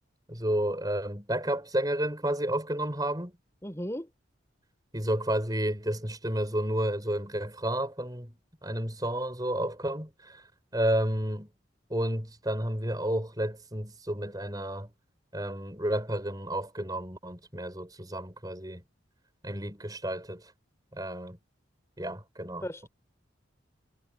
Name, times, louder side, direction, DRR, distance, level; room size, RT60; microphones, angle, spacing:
voice 1, 0.3-3.3 4.9-10.4 10.7-11.5 11.9-14.9 15.3-18.8 19.4-20.4 20.9-21.4 22.0-22.7, right 1 dB, 20° right, 7.3 m, -31 dB
voice 2, 3.6-4.1 22.6-22.9, equal, 15° left, 5.0 m, -35 dB
head